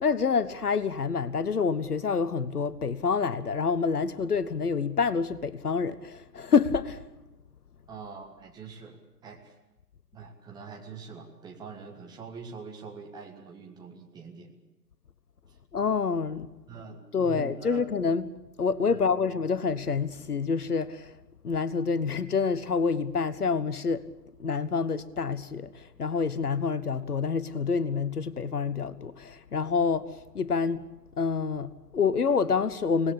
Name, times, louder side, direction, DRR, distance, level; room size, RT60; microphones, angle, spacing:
voice 1, 0.0-7.0 15.7-16.5 17.1-18.3 18.6-21.1 21.4-24.1 24.4-30.8 31.2-33.1, left 5 dB, 65° left, 1.2 m, -27 dB
voice 2, 7.9-9.5 10.1-14.5 16.7-17.8 18.9-19.1, right 5 dB, 10° right, 1.6 m, -44 dB
24.5 x 19.0 x 8.4 m
figure-of-eight pair, 130°, 49 cm